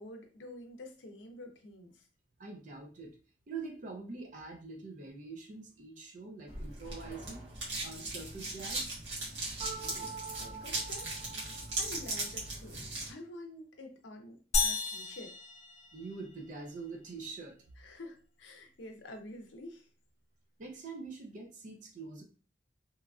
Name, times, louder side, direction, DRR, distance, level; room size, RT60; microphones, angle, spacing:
voice 1, 0.0-2.1 9.8-11.2 11.8-15.4 17.8-19.9, left 1 dB, 75° left, 4 dB, 0.5 m, -48 dB
voice 2, 2.4-3.2 3.5-7.4 7.8-8.9 15.9-17.5 20.6-22.2, right 4 dB, 45° right, 2 dB, 0.5 m, -44 dB
sound 1, 6.5-13.1, right 2 dB, 75° right, 1.2 m, -38 dB
sound 2, 9.6-12.5, right 5 dB, 20° right, 0.8 m, -46 dB
sound 3, 14.5-16.5, left 4 dB, 40° left, 0.6 m, -33 dB
2.9 x 2.4 x 2.3 m, 0.36 s
head